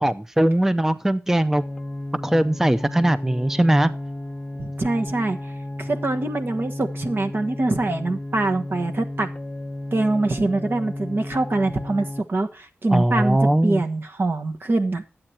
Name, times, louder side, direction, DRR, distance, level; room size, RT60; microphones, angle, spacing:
voice 1, 0.0-1.6 2.2-3.9 12.9-13.8, right 1 dB, 10° right, 13 dB, 0.5 m, -20 dB
sound 1, 1.6-12.2, left 1 dB, 25° left, 1.2 m, -33 dB
voice 2, 4.6-5.5 5.8-9.3 9.9-15.0, right 2 dB, 55° right, 6 dB, 1.4 m, -24 dB
11.5 x 8.8 x 4.4 m, 0.32 s
cardioid pair, 50°, 4 cm